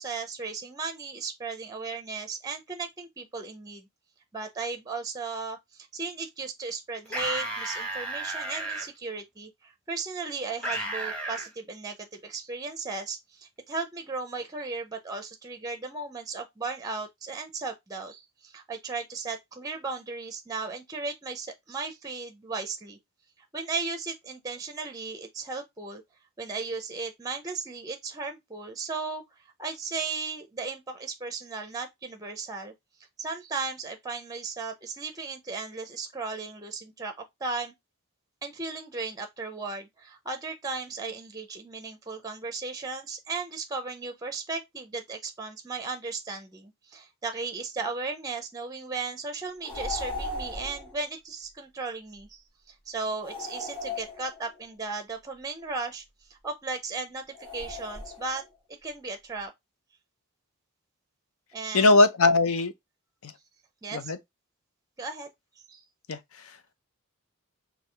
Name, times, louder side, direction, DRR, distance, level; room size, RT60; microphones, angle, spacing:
voice 1, 0.0-3.9 4.3-23.0 23.5-26.0 26.4-29.2 29.6-32.7 33.2-37.7 38.4-52.4 52.9-56.0 56.3-58.4 58.8-59.5 61.5-61.9 63.8-64.1 65.0-65.3 65.7-65.8, right 4 dB, 15° right, 0.6 m, -36 dB
sound 1, 7.1-8.9 10.6-11.5, right 1 dB, 5° left, 1.1 m, -33 dB
sound 2, 49.6-51.0 53.2-54.6 57.3-58.5, left 2 dB, 25° left, 2.4 m, -37 dB
voice 2, 61.7-62.7 63.2-63.3 63.9-64.2 66.1-66.6, left 2 dB, 70° left, 0.6 m, -21 dB
4.7 x 2.7 x 3.2 m
head